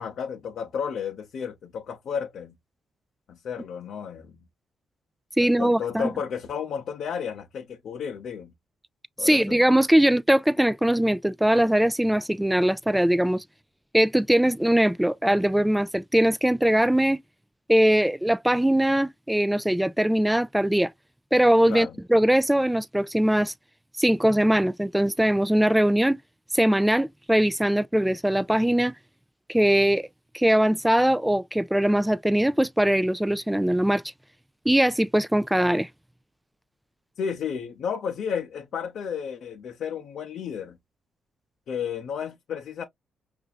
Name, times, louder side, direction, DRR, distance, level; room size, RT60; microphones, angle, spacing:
voice 1, 0.0-2.6 3.3-4.4 5.4-8.5 9.2-9.6 21.7-22.0 37.2-40.8 41.7-42.8, left 7 dB, 70° left, 0.7 m, -32 dB
voice 2, 5.4-6.1 9.2-13.4 13.9-17.2 17.7-20.9 21.3-23.5 24.0-26.2 26.5-28.9 29.5-30.1 30.3-34.0 34.7-35.9, right 1 dB, 5° right, 0.4 m, -21 dB
5.5 x 2.6 x 2.3 m
supercardioid pair, 60°, 0 cm